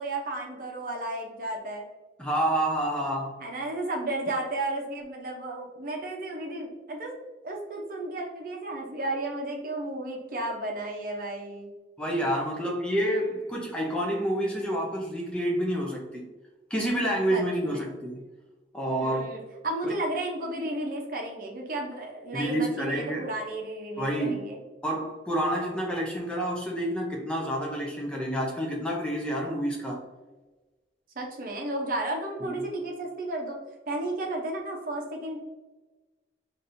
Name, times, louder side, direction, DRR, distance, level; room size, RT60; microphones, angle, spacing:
voice 1, 0.0-1.8 3.4-7.1 7.4-11.7 17.3-17.9 19.0-24.6 31.2-33.6 33.9-35.4, right 2 dB, 50° right, 0 dB, 0.7 m, -33 dB
voice 2, 2.2-3.4 12.0-16.2 16.7-18.2 18.7-19.3 19.8-19.9 22.3-23.3 24.0-24.5 24.8-30.0 32.4-32.6, right 1 dB, 5° left, -2 dB, 0.5 m, -28 dB
5.8 x 2.6 x 2.6 m, 1.2 s
head